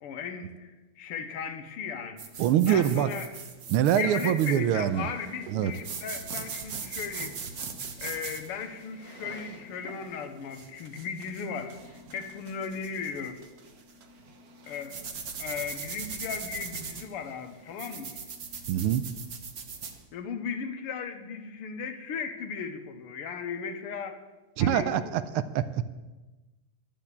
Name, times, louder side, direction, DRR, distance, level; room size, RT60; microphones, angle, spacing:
voice 1, 0.0-2.3 2.7-3.4 3.9-7.4 8.0-13.4 14.7-15.1 15.4-18.2 20.1-24.2 24.6-25.2, left 6 dB, 85° left, 7 dB, 2.0 m, -36 dB
sound 1, 2.2-20.0, right 5 dB, 50° right, 1.4 m, -41 dB
voice 2, 2.4-3.1 3.7-5.1 5.5-5.7 18.7-19.0 24.6-25.8, right 10 dB, 85° right, 13 dB, 1.5 m, -24 dB
12.0 x 7.3 x 8.2 m, 1.2 s
omnidirectional pair, 2.4 m